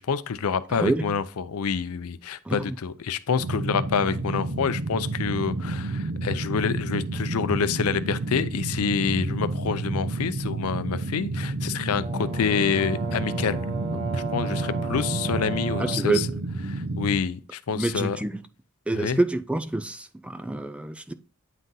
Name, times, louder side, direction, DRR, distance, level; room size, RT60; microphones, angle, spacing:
voice 1, 0.0-13.6 13.9-16.3 16.7-18.2 18.9-19.2, left 6 dB, 75° left, 0.5 m, -27 dB
voice 2, 0.7-1.0 2.5-2.8 15.8-16.4 17.7-18.4 18.9-21.1, right 2 dB, 5° right, 0.3 m, -27 dB
sound 1, 3.4-17.2, right 2 dB, 85° right, 0.8 m, -30 dB
Brass instrument, 12.0-16.2, right 5 dB, 25° right, 1.0 m, -35 dB
9.2 x 3.8 x 2.7 m
head